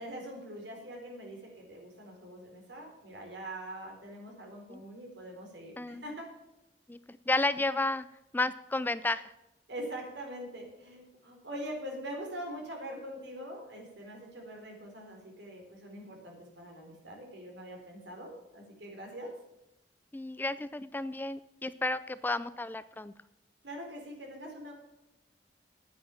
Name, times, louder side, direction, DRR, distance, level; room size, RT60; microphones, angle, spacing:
voice 1, 0.0-6.4 9.7-19.4 23.6-24.7, right 1 dB, 70° right, 1 dB, 4.1 m, -43 dB
voice 2, 6.9-8.1 8.3-9.2 20.1-23.1, left 2 dB, 10° left, 15 dB, 0.3 m, -32 dB
9.4 x 9.4 x 7.3 m, 0.92 s
head